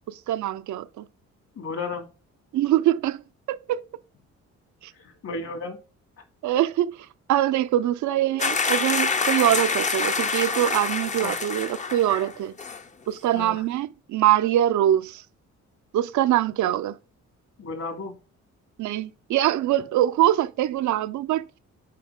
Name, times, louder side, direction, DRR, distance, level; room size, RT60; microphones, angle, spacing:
voice 1, 0.1-1.1 2.5-3.2 3.5-3.8 4.8-4.9 6.4-6.9 7.3-12.5 13.1-15.2 15.9-17.0 18.8-21.4, right 13 dB, 75° right, 0.6 m, -23 dB
voice 2, 1.6-2.1 4.9-5.8 11.2-11.4 13.3-13.6 16.6-16.7 17.6-18.2, left 3 dB, 60° left, 2.7 m, -33 dB
sound 1, 8.4-12.3 12.6-12.8, left 4 dB, 25° left, 0.6 m, -26 dB
7.6 x 4.7 x 3.6 m
cardioid pair, 90°, 30 cm